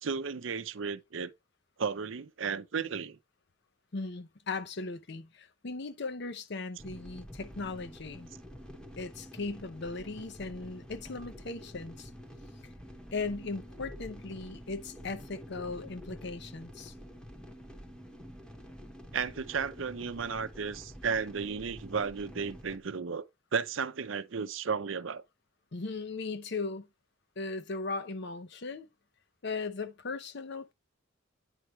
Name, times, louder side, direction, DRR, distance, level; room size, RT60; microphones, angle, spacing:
voice 1, 0.0-1.3 1.8-3.2 19.1-23.2 23.5-25.2, right 5 dB, 70° right, 0.6 m, -34 dB
voice 2, 3.9-8.3 9.0-12.1 13.1-16.9 25.7-26.9 27.4-28.9 29.4-30.7, left 3 dB, 55° left, 0.7 m, -38 dB
sound 1, 6.8-22.8, equal, 5° left, 1.0 m, -48 dB
9.0 x 4.6 x 3.1 m
head